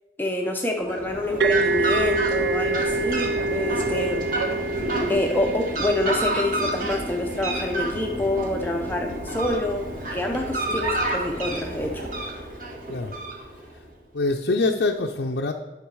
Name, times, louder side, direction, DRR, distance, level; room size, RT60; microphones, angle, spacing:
voice 1, 0.2-4.2 5.1-9.9 10.1-12.1, left 1 dB, 10° left, 2 dB, 0.6 m, -27 dB
Fowl, 0.8-13.8, right 1 dB, 50° right, 1.6 m, -29 dB
sound 1, 1.4-8.9, right 3 dB, 70° right, 0.4 m, -28 dB
voice 2, 14.1-15.5, left 3 dB, 75° left, 2 dB, 0.6 m, -24 dB
10.0 x 5.9 x 4.7 m, 1.2 s
head